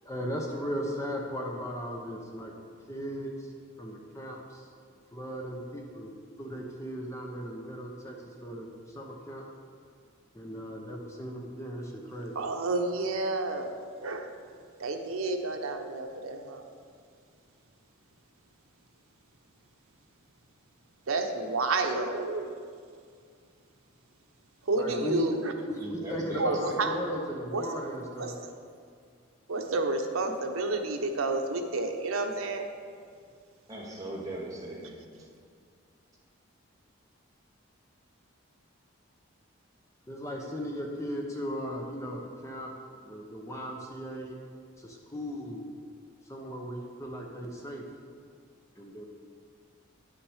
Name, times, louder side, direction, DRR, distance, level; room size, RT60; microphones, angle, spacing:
voice 1, 0.0-2.5 2.9-3.5 3.8-4.7 5.1-6.1 6.4-9.4 10.3-12.4 24.8-25.2 25.7-28.3 40.1-42.7 43.0-44.4 44.8-45.6 46.3-47.8 48.8-49.1, equal, 15° left, 0 dB, 0.7 m, -37 dB
voice 2, 12.3-13.7 14.0-14.3 14.8-16.7 21.1-22.6 24.7-25.5 26.4-26.9 27.5-27.6 28.2-28.5 29.5-32.7, right 3 dB, 80° right, 4 dB, 0.8 m, -30 dB
voice 3, 25.8-27.2 33.7-35.3, right 1 dB, 15° right, -5 dB, 1.6 m, -39 dB
9.8 x 6.0 x 4.8 m, 2.1 s
head